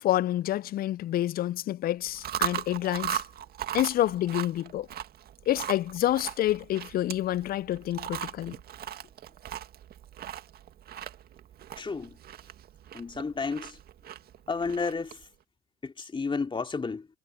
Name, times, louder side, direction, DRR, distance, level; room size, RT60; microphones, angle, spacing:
voice 1, 0.0-3.2 3.7-4.9 5.5-8.5, left 13 dB, 50° left, 0.6 m, -28 dB
Chewing mastication, 2.0-15.2, right 11 dB, 50° right, 2.1 m, -38 dB
voice 2, 11.8-12.2 12.9-13.8 14.5-15.2 15.8-17.1, left 4 dB, 25° left, 3.0 m, -32 dB
hypercardioid pair, 60°, 20 cm